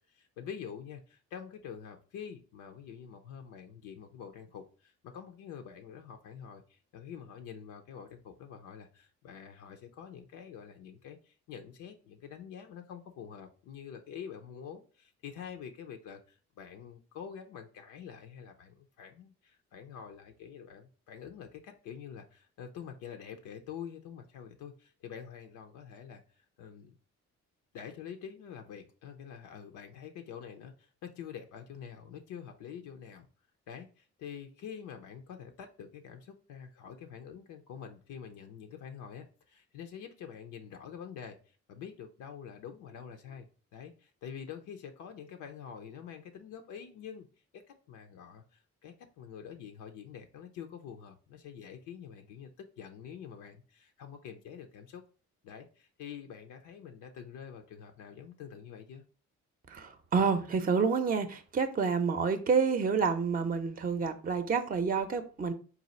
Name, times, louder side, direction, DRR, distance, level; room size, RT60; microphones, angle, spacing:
voice 1, 0.1-26.2 26.6-26.9 27.7-33.3 33.7-43.5 43.7-47.3 47.5-55.0 55.4-59.0, left 8 dB, 90° left, 0.6 m, -46 dB
voice 2, 59.7-65.5, right 5 dB, 30° right, 0.5 m, -29 dB
4.0 x 2.4 x 4.1 m
cardioid pair, 90°, 30 cm